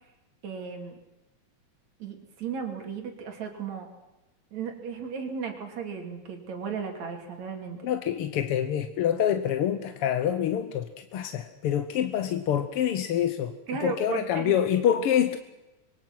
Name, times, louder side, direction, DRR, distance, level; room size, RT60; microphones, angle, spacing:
voice 1, 0.4-1.0 2.0-3.9 4.5-7.8 13.7-14.6, right 6 dB, 70° right, 4 dB, 4.0 m, -35 dB
voice 2, 7.8-13.5 13.8-15.4, left 9 dB, 65° left, 9 dB, 1.6 m, -26 dB
26.0 x 23.0 x 6.0 m, 0.99 s
omnidirectional pair, 3.3 m